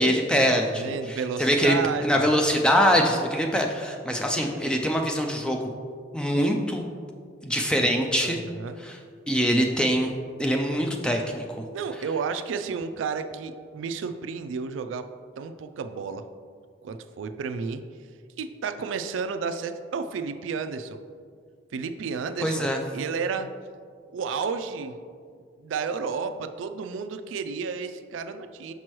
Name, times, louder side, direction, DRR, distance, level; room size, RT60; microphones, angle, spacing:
voice 1, 0.0-1.8 2.0-5.7 6.1-6.9 7.4-8.4 8.8-9.0 9.3-10.1 10.4-11.6 22.4-22.8, equal, 5° left, 2 dB, 0.3 m, -23 dB
voice 2, 0.7-2.3 8.2-8.8 11.7-15.1 15.4-16.2 16.8-17.8 18.4-21.0 21.7-23.5 24.1-25.0 25.6-28.7, right 5 dB, 85° right, 9 dB, 0.3 m, -32 dB
6.0 x 5.3 x 3.0 m, 2.1 s
head